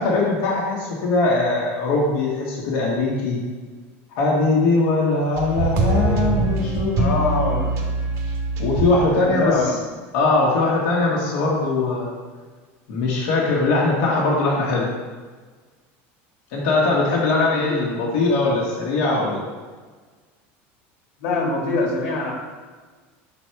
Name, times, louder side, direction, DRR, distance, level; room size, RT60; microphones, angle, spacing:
voice 1, 0.0-3.4 4.1-7.1 8.6-9.7 10.1-12.1 12.9-14.9 16.5-19.4, left 3 dB, 60° left, -4 dB, 1.3 m, -21 dB
sound 1, 5.4-9.0 9.6-9.7, right 3 dB, 50° right, 1.0 m, -23 dB
voice 2, 7.0-7.7 9.1-9.8 17.5-17.8 21.2-22.3, left 3 dB, 85° left, -1 dB, 1.6 m, -24 dB
5.8 x 4.0 x 4.5 m, 1.4 s
cardioid pair, 165°, 6 cm